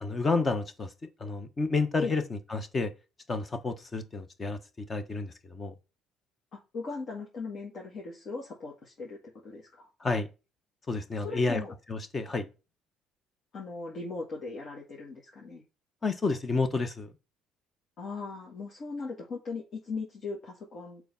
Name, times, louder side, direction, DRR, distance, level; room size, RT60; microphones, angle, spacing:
voice 1, 0.0-0.9 1.2-2.9 3.3-5.7 10.0-10.3 10.9-11.6 11.9-12.5 16.0-17.1, left 3 dB, 25° left, 1.0 m, -30 dB
voice 2, 6.7-9.2 9.4-9.9 11.2-11.7 13.5-15.6 18.0-21.0, left 4 dB, 50° left, 2.0 m, -38 dB
6.9 x 4.6 x 5.5 m
cardioid pair, 110°, 0 cm